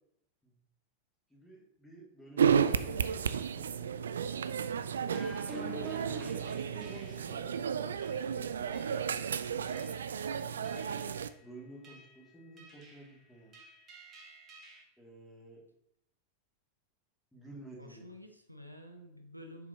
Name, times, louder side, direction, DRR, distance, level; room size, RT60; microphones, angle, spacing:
voice 1, 1.3-4.0 5.5-6.0 6.2-7.9 10.5-13.6 15.0-15.6 17.3-18.1, right 2 dB, 5° left, -3 dB, 2.5 m, -51 dB
sound 1, 2.4-11.3, right 7 dB, 65° right, 0.3 m, -32 dB
sound 2, 5.1-7.4 8.0-8.2 8.7-9.2 9.7-10.2 10.6-11.2 11.8-12.1 12.6-13.1 13.5-14.8, right 3 dB, 30° right, 1.6 m, -47 dB
voice 2, 17.8-19.7, equal, 90° right, 4 dB, 0.8 m, -50 dB
7.0 x 4.8 x 4.0 m, 0.76 s
figure-of-eight pair, 90°, 0 cm